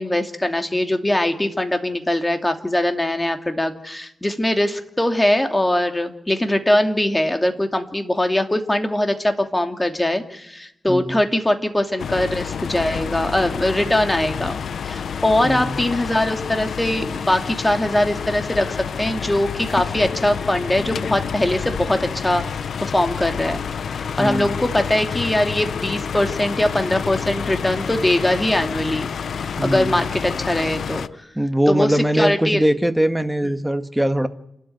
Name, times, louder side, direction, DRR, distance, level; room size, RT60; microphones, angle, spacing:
voice 1, 0.0-14.6 14.9-22.4 22.8-29.1 29.4-31.0 31.7-32.6, left 1 dB, 15° left, 6 dB, 2.6 m, -21 dB
voice 2, 10.9-11.2 15.4-15.8 24.2-24.6 29.6-30.0 31.3-34.3, right 1 dB, 5° right, 8 dB, 1.7 m, -21 dB
sound 1, 12.0-31.1, left 7 dB, 80° left, 0.8 m, -29 dB
28.5 x 12.5 x 9.3 m, 0.79 s
cardioid pair, 85°, 0 cm